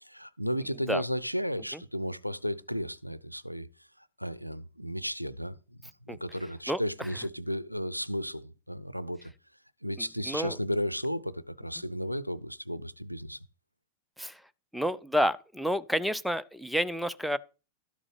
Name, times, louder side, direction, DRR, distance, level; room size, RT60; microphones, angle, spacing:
voice 1, 0.0-3.7 4.0-9.3 9.8-13.4, equal, 90° right, 0.5 m, -34 dB
voice 2, 10.3-10.6 14.2-14.4 14.7-17.4, equal, ahead, 0.5 m, -29 dB
12.5 x 7.3 x 4.9 m
figure-of-eight pair, 90°, 0 cm